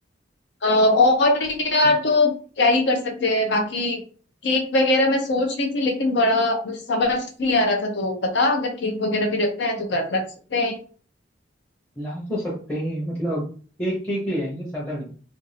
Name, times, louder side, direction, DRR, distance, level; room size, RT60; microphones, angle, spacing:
voice 1, 0.6-4.0 4.4-10.2 10.5-10.8, left 2 dB, 65° left, 3 dB, 0.6 m, -21 dB
voice 2, 12.0-13.5 13.8-15.1, equal, 10° left, -6 dB, 0.7 m, -28 dB
2.5 x 2.3 x 3.1 m, 0.41 s
head